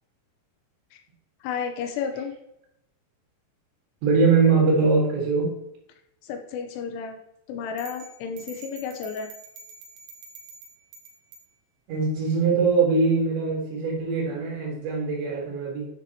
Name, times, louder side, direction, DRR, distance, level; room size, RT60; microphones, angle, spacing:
voice 1, 1.4-2.4 6.2-7.2 7.5-9.3, left 6 dB, 90° left, 5 dB, 3.3 m, -32 dB
voice 2, 4.0-5.5 11.9-15.9, right 4 dB, 65° right, -2 dB, 3.8 m, -22 dB
sound 1, 7.8-11.5, right 3 dB, 85° right, 3.7 m, -46 dB
9.8 x 6.2 x 2.9 m, 0.81 s
omnidirectional pair, 5.8 m